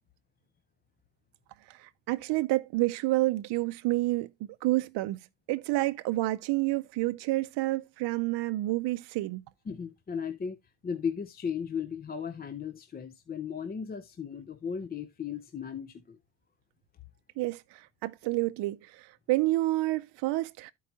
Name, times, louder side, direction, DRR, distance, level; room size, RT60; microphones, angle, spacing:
voice 1, 1.7-4.3 4.6-5.2 5.5-9.4 17.4-20.7, right 19 dB, 65° right, 0.5 m, -29 dB
voice 2, 9.7-10.6 10.8-16.2, left 6 dB, 20° left, 0.5 m, -36 dB
13.5 x 4.6 x 2.6 m
cardioid pair, 130°, 46 cm